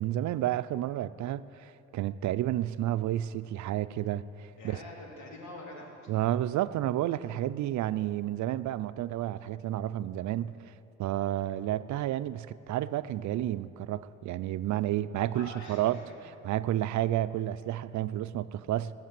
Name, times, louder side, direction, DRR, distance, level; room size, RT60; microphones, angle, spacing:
voice 1, 0.0-4.8 6.1-10.5 11.0-16.0 16.4-18.9, right 13 dB, 70° right, 15 dB, 0.5 m, -31 dB
voice 2, 4.6-6.6 15.3-16.0, left 1 dB, 70° left, -2 dB, 3.3 m, -46 dB
17.5 x 7.4 x 7.6 m, 2.7 s
cardioid pair, 90°, 30 cm